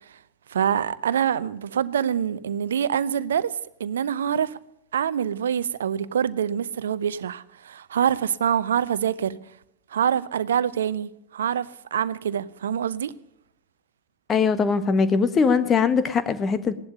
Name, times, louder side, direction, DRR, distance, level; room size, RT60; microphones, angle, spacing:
voice 1, 0.5-4.6 4.9-9.4 9.9-13.1, right 8 dB, 65° right, 0.7 m, -25 dB
voice 2, 14.3-16.7, left 5 dB, 20° left, 1.4 m, -21 dB
17.5 x 11.5 x 6.6 m
figure-of-eight pair, 90°, 0 cm